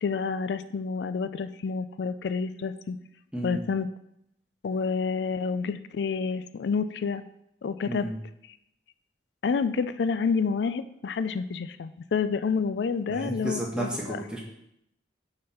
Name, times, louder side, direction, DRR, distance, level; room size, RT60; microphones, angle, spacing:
voice 1, 0.0-3.0 3.4-3.9 4.6-7.2 7.6-8.1 9.4-14.2, left 5 dB, 70° left, 12 dB, 0.4 m, -29 dB
voice 2, 3.3-3.6 7.8-8.2 13.1-14.4, right 1 dB, 5° right, -3 dB, 1.0 m, -32 dB
5.3 x 4.1 x 5.6 m, 0.78 s
head